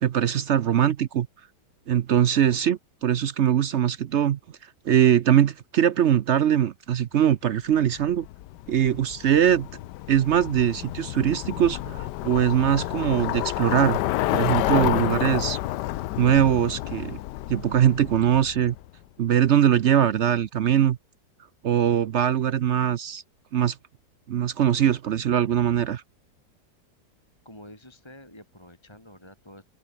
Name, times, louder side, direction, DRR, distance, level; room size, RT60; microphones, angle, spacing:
voice 1, 0.0-1.3 1.9-4.4 4.8-8.3 8.7-9.7 10.1-14.0 14.3-15.6 16.2-17.2 17.5-18.7 19.2-21.0 21.6-23.2 23.5-23.8 24.3-26.0, right 10 dB, 65° right, 0.7 m, -22 dB
Bicycle, 7.9-18.8, left 15 dB, 75° left, 1.2 m, -29 dB
voice 2, 27.4-29.6, left 1 dB, 15° left, 3.8 m, -48 dB
open air
omnidirectional pair, 1.9 m